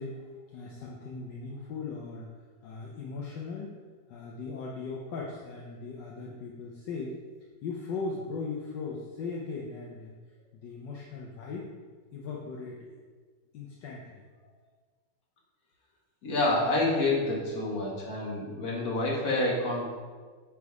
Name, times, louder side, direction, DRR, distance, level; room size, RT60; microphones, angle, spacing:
voice 1, 0.0-2.3 2.6-3.8 4.1-7.2 7.6-10.1 10.5-11.7 12.1-13.0 13.5-14.2, left 4 dB, 75° left, -2 dB, 1.4 m, -38 dB
voice 2, 16.2-19.9, left 2 dB, 55° left, -3 dB, 1.9 m, -28 dB
9.3 x 3.6 x 4.7 m, 1.5 s
omnidirectional pair, 2.0 m